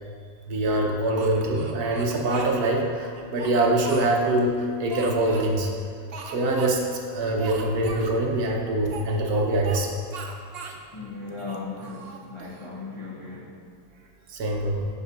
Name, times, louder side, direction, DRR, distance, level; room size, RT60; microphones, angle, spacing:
voice 1, 0.5-5.7 6.3-9.9 14.3-14.9, right 1 dB, 65° right, 0 dB, 1.3 m, -24 dB
Speech, 1.2-2.6 3.1-4.4 4.9-5.5 6.1-6.7 7.0-7.1 7.4-8.1 8.8-9.8 10.1-10.8 11.3-12.7, right 4 dB, 85° right, 0.5 m, -39 dB
voice 2, 10.9-13.5, left 3 dB, 30° left, -5 dB, 0.5 m, -37 dB
6.0 x 5.6 x 5.4 m, 2.1 s
omnidirectional pair, 1.9 m